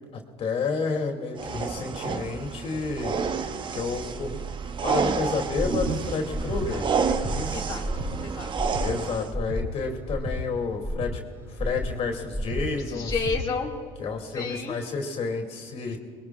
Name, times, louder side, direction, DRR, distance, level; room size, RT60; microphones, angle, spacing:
voice 1, 0.1-3.2 3.7-4.4 4.8-7.6 8.8-11.2 11.5-13.1 14.0-16.0, left 4 dB, 50° left, 2 dB, 2.7 m, -30 dB
sound 1, 1.4-9.3, right 6 dB, 35° right, 0.9 m, -30 dB
Breathing, 5.5-5.9 6.3-6.6 7.0-7.4 7.8-8.1 8.5-8.9 9.3-9.6 10.0-10.4 10.8-11.1 11.5-11.9 12.3-12.6 13.0-13.4, equal, 15° right, 5.1 m, -31 dB
voice 2, 7.5-7.8 8.2-8.5 12.7-13.8 14.2-14.8 15.9-16.0, left 5 dB, 25° left, -4 dB, 2.2 m, -31 dB
26.5 x 21.0 x 2.4 m, 2.2 s
supercardioid pair, 80°, 13 cm